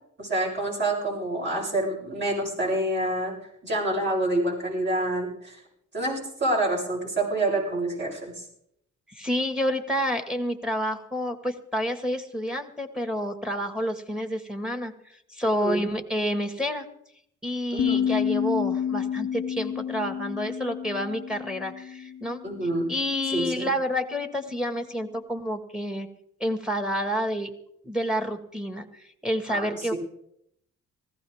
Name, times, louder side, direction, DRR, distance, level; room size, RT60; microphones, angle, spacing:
voice 1, 0.2-3.3 3.6-5.6 5.9-8.5 15.4-15.9 17.7-18.0 22.4-22.9 23.3-23.7 29.5-30.0, right 1 dB, 40° right, -3 dB, 7.7 m, -27 dB
voice 2, 9.1-14.9 15.3-16.9 17.4-22.4 22.9-26.1 26.4-27.5 27.8-29.9, equal, 5° right, 7 dB, 2.0 m, -29 dB
sound 1, 17.8-22.9, left 8 dB, 45° left, 0.6 m, -29 dB
19.0 x 16.0 x 3.6 m, 0.73 s
cardioid pair, 90°, 30 cm